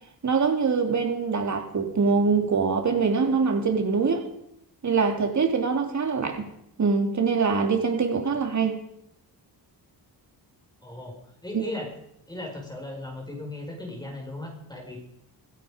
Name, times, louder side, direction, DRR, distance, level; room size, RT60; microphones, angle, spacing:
voice 1, 0.2-4.2 4.8-6.5 6.8-8.8 11.5-11.6, right 5 dB, 45° right, 3.0 m, -24 dB
voice 2, 10.8-11.2 11.4-11.9 12.3-15.0, left 2 dB, 10° left, 5.6 m, -37 dB
17.5 x 15.5 x 5.2 m
cardioid pair, 95°, 41 cm